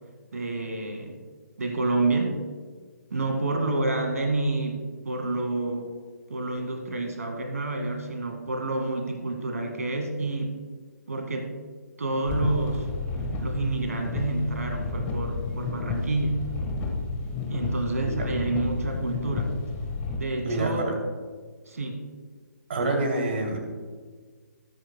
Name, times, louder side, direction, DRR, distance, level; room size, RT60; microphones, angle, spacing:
voice 1, 0.3-1.2 1.6-2.4 3.1-5.9 6.3-10.6 11.1-11.5 12.0-12.9 13.4-16.4 17.5-19.6 20.2-20.9 21.7-22.1, right 2 dB, 60° right, 4 dB, 1.9 m, -28 dB
sound 1, 12.2-20.2, left 3 dB, 15° left, 1.4 m, -31 dB
voice 2, 20.4-20.9 22.7-23.6, right 2 dB, 40° right, 1 dB, 2.7 m, -27 dB
20.5 x 8.4 x 2.2 m, 1.5 s
figure-of-eight pair, 135°, 9 cm